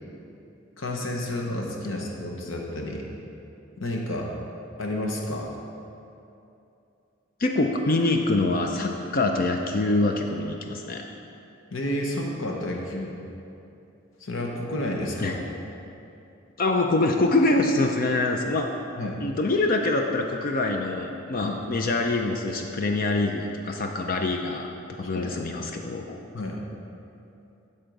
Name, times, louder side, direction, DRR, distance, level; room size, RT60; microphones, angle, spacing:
voice 1, 0.8-3.1 3.8-4.3 4.8-5.5 11.7-13.2 14.2-15.4 19.0-19.2 21.4-21.6 25.0-25.3 26.3-26.6, left 1 dB, 70° left, 0 dB, 0.9 m, -31 dB
voice 2, 7.4-11.0 15.2-15.5 16.6-18.7 19.2-24.7 25.0-26.2, left 2 dB, 45° left, 3 dB, 0.5 m, -25 dB
12.5 x 4.4 x 5.2 m, 2.7 s
head